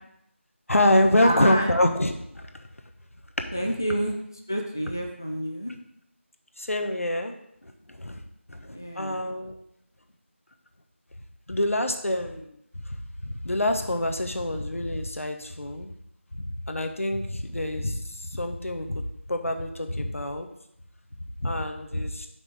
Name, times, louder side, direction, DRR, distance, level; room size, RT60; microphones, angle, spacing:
voice 1, 0.7-2.5 3.6-3.8 6.6-7.3 7.6-8.2 8.5-9.5 11.5-12.5 13.2-15.9 16.7-20.5 21.4-22.3, left 1 dB, 90° left, 5 dB, 1.2 m, -26 dB
voice 2, 1.2-1.8 3.5-4.1 4.5-5.7 8.7-9.2, right 1 dB, 15° left, 1 dB, 0.4 m, -28 dB
10.0 x 5.9 x 3.6 m, 0.74 s
figure-of-eight pair, 175°, 7 cm